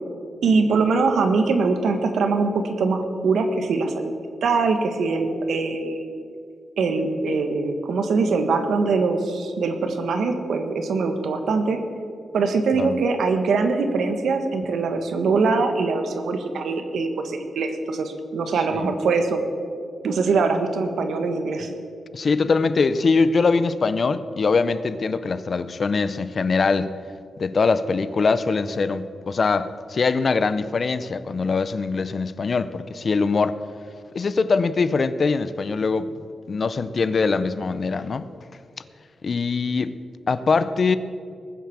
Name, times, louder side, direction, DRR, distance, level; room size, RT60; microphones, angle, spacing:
voice 1, 0.4-4.1 4.4-6.0 6.8-11.8 12.3-19.4 20.0-21.7, right 4 dB, 80° right, 7 dB, 1.5 m, -22 dB
voice 2, 22.1-26.9 27.4-33.6 34.1-36.1 36.5-38.3 39.2-40.0 40.3-41.0, left 4 dB, 40° left, 14 dB, 0.5 m, -22 dB
19.5 x 7.5 x 7.2 m, 2.3 s
wide cardioid pair, 155°, 0 cm